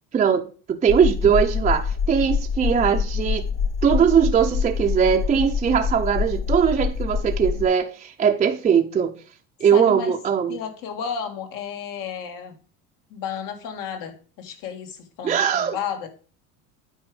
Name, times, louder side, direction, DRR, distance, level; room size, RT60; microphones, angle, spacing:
voice 1, 0.1-3.4 3.8-9.2 9.6-10.6 15.2-15.8, right 7 dB, 20° right, 0.6 m, -20 dB
sound 1, 0.9-7.7, left 6 dB, 35° left, 0.7 m, -25 dB
voice 2, 9.7-10.2 10.5-12.6 13.1-16.1, left 7 dB, 65° left, 1.8 m, -32 dB
9.0 x 4.7 x 4.8 m
cardioid pair, 140°, 35 cm